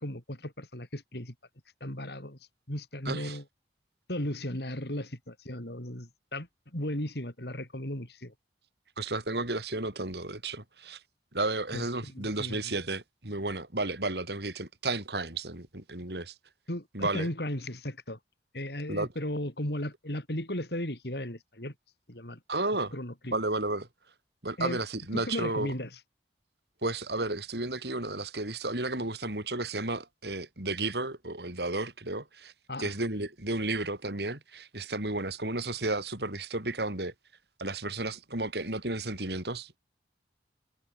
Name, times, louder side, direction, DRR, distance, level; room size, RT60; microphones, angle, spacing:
voice 1, 0.0-1.3 1.8-2.4 2.7-3.4 4.1-6.5 6.7-8.3 11.7-11.8 12.1-12.6 16.7-18.2 18.5-21.7 22.1-22.4 22.9-23.4 24.6-24.8 25.1-25.9 32.7-32.9, left 1 dB, 65° left, 5.2 m, -35 dB
voice 2, 3.1-3.4 9.0-11.0 11.3-16.3 16.9-17.3 18.9-19.1 22.5-22.9 23.3-23.9 24.4-25.7 26.8-32.5 32.8-37.1 37.6-39.8, right 2 dB, 65° right, 3.9 m, -33 dB
head